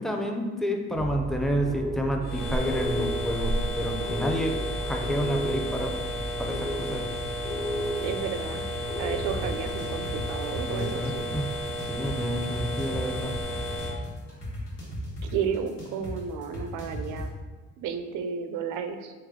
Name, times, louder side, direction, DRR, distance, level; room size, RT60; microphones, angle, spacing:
voice 1, 0.0-5.9 6.4-7.0 10.7-11.5 11.8-13.3, equal, ahead, 2 dB, 0.5 m, -30 dB
sound 1, 1.0-9.7, equal, 20° left, 0.8 m, -34 dB
sound 2, 2.2-13.9, equal, 60° left, 1.2 m, -33 dB
voice 2, 8.0-8.7 9.0-11.3 15.2-17.3 17.8-19.1, right 7 dB, 90° right, 8 dB, 0.5 m, -32 dB
sound 3, 9.3-17.3, equal, 85° left, 1.4 m, -37 dB
3.3 x 3.0 x 3.6 m, 1.4 s
cardioid pair, 90°, 30 cm